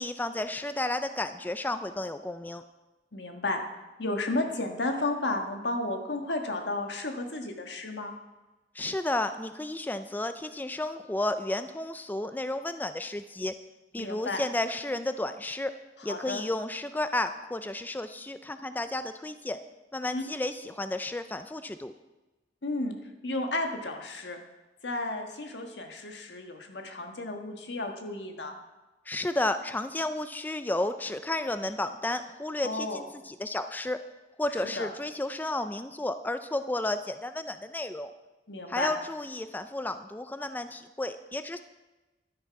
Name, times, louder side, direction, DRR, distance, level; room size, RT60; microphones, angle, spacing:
voice 1, 0.0-2.6 8.8-13.5 13.9-15.7 16.0-19.6 19.9-21.9 29.1-34.0 34.4-38.1 38.7-41.6, left 2 dB, 10° left, 10 dB, 0.4 m, -32 dB
voice 2, 3.1-3.6 4.0-8.1 14.0-14.4 16.1-16.4 20.1-20.2 22.6-22.9 23.2-24.4 24.8-28.5 32.6-33.0 34.8-34.9 38.5-38.9, left 2 dB, 80° left, 4 dB, 1.5 m, -32 dB
11.5 x 10.0 x 4.7 m, 1.1 s
head